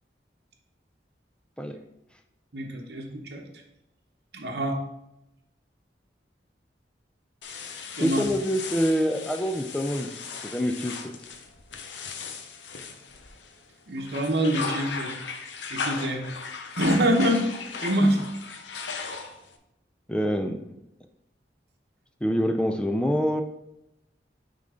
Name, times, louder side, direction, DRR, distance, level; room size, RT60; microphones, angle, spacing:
voice 1, 2.5-3.4 4.3-4.8 8.0-8.3 13.9-15.1 15.7-16.2 16.8-17.4 17.8-18.2, equal, 65° right, 1 dB, 0.9 m, -25 dB
sound 1, 7.4-13.6 14.0-19.6, left 5 dB, 85° left, 0.7 m, -37 dB
voice 2, 8.0-10.1 10.4-10.9 20.1-20.6 22.2-23.4, equal, 5° left, 5 dB, 0.4 m, -25 dB
8.8 x 3.8 x 3.7 m, 0.85 s
head